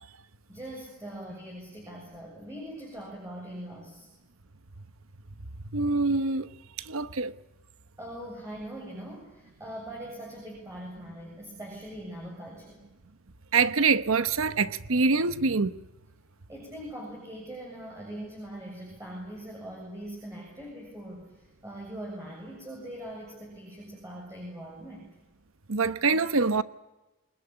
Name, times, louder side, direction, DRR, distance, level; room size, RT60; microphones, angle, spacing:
voice 1, 0.5-4.1 8.0-12.9 16.5-25.1, right 1 dB, 15° right, 7.2 m, -41 dB
voice 2, 5.7-6.5 6.8-7.3 13.5-15.8 25.7-26.6, right 4 dB, 85° right, 1.0 m, -25 dB
25.0 x 20.5 x 9.9 m
head